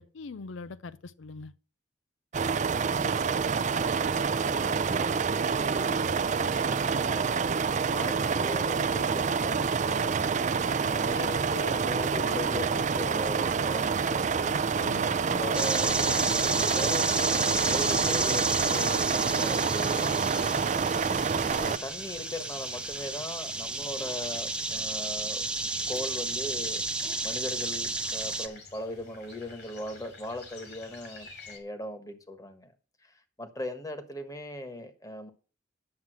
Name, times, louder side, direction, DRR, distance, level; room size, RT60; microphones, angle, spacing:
voice 1, 0.0-1.5 14.8-15.4, left 3 dB, 85° left, 0.5 m, -42 dB
sound 1, 2.3-21.8, right 5 dB, 40° right, 0.4 m, -27 dB
voice 2, 2.9-7.4 7.9-14.6 15.2-25.4 25.9-26.8 27.2-32.7 33.0-35.3, left 1 dB, 20° left, 1.3 m, -39 dB
sound 2, 15.5-28.5, right 2 dB, 5° right, 0.7 m, -31 dB
sound 3, 21.5-31.6, left 3 dB, 55° left, 2.7 m, -50 dB
9.7 x 7.2 x 6.0 m
head